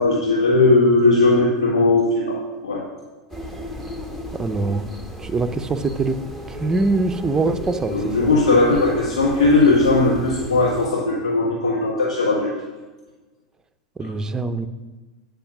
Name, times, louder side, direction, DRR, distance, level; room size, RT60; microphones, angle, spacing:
voice 1, 0.0-2.9 7.9-12.5 14.0-14.1, left 2 dB, 85° left, -1 dB, 1.2 m, -18 dB
sound 1, 3.3-10.9, right 1 dB, 10° left, 1.5 m, -35 dB
voice 2, 4.3-4.9 5.2-6.2 6.5-8.3 14.0-14.7, right 3 dB, 20° right, 9 dB, 0.7 m, -23 dB
8.8 x 5.4 x 6.0 m, 1.2 s
hypercardioid pair, 95°, 3 cm